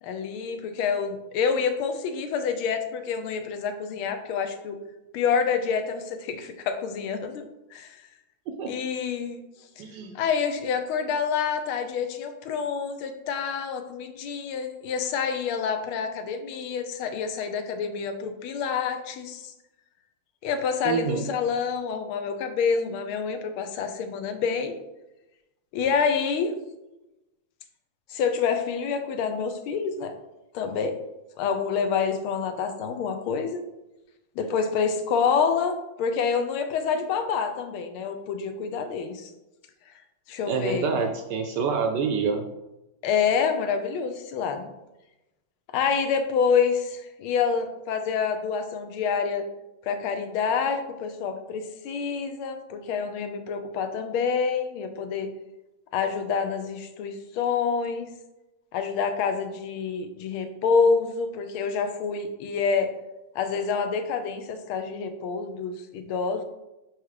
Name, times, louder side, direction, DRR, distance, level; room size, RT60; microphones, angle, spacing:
voice 1, 0.0-4.8 5.1-7.4 7.7-8.0 8.7-9.4 10.1-19.5 20.4-24.7 25.7-26.5 28.1-30.1 30.5-31.0 31.4-33.6 34.4-39.3 40.3-41.0 43.0-44.7 45.7-49.4 49.8-55.3 55.9-58.1 58.7-62.9 63.3-66.4, left 6 dB, 85° left, 7 dB, 1.6 m, -27 dB
voice 2, 9.8-10.1 20.8-21.3 40.5-42.5, right 5 dB, 75° right, 6 dB, 1.0 m, -27 dB
4.8 x 4.7 x 4.8 m, 0.97 s
omnidirectional pair, 2.3 m